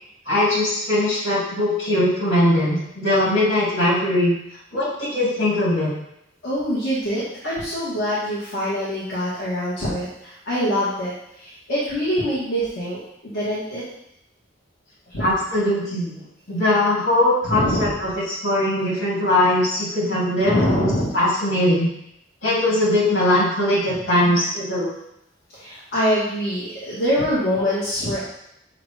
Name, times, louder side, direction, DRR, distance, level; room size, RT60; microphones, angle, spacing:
voice 1, 0.3-4.3 4.7-5.9 15.2-16.2 16.5-21.9 22.4-24.9, left 1 dB, 80° left, -6 dB, 2.5 m, -20 dB
voice 2, 6.4-11.1 11.4-13.0 13.2-13.8 15.1-15.2 17.4-17.9 20.5-21.1 23.9-24.0 25.5-28.2, equal, 60° left, -10 dB, 1.8 m, -24 dB
7.7 x 2.6 x 5.0 m, 0.78 s
head